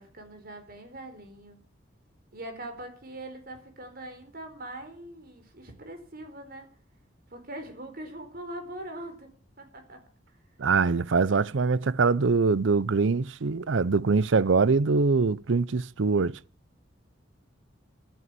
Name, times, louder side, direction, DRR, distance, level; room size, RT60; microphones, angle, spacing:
voice 1, 0.0-1.6 2.3-6.7 7.3-9.3 9.6-10.0, right 1 dB, 50° right, 4.4 m, -42 dB
voice 2, 10.6-16.4, right 4 dB, 85° right, 0.6 m, -23 dB
13.0 x 9.5 x 9.9 m
head